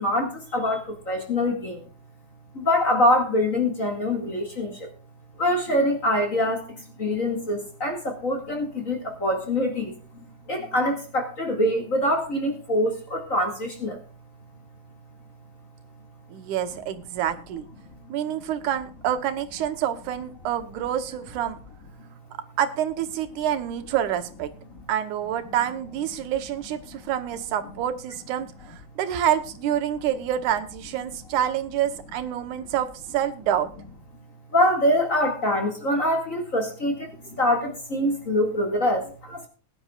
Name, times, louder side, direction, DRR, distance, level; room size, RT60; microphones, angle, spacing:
voice 1, 0.0-1.8 2.5-4.9 5.4-14.0 34.5-39.5, left 1 dB, 30° left, 3 dB, 2.2 m, -24 dB
voice 2, 16.3-17.6 18.1-21.6 22.6-24.5 24.9-33.7, right 10 dB, 85° right, 9 dB, 2.5 m, -27 dB
20.5 x 10.5 x 2.4 m, 0.38 s
omnidirectional pair, 3.4 m